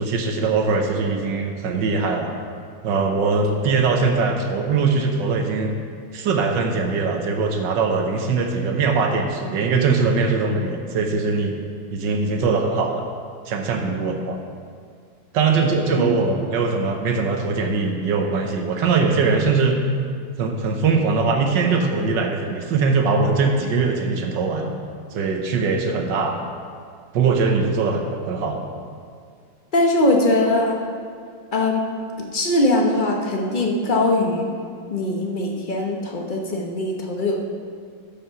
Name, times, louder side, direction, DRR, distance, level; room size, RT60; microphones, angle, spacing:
voice 1, 0.0-2.4 2.8-5.7 6.1-11.6 11.9-13.0 13.5-14.4 15.3-19.8 20.4-24.7 25.1-26.4 27.1-28.6, right 4 dB, 70° right, 4 dB, 1.5 m, -21 dB
voice 2, 29.7-30.8 31.5-31.8 32.3-34.5 34.9-37.4, left 1 dB, 35° left, 1 dB, 0.9 m, -21 dB
12.0 x 5.5 x 5.8 m, 2.1 s
omnidirectional pair, 2.1 m